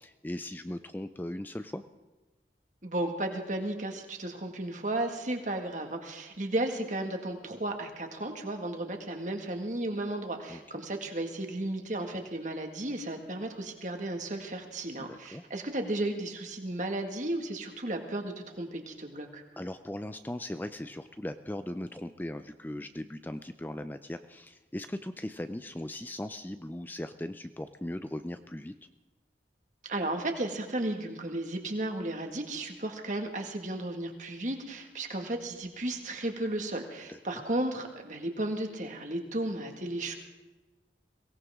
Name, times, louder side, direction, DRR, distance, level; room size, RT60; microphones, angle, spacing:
voice 1, 0.0-1.8 10.5-10.6 15.1-15.4 19.6-28.7 37.1-37.4, left 1 dB, 10° left, 9 dB, 0.4 m, -38 dB
voice 2, 2.8-19.4 29.8-40.1, right 1 dB, 45° right, 4 dB, 1.9 m, -34 dB
23.0 x 17.5 x 3.6 m, 1.1 s
head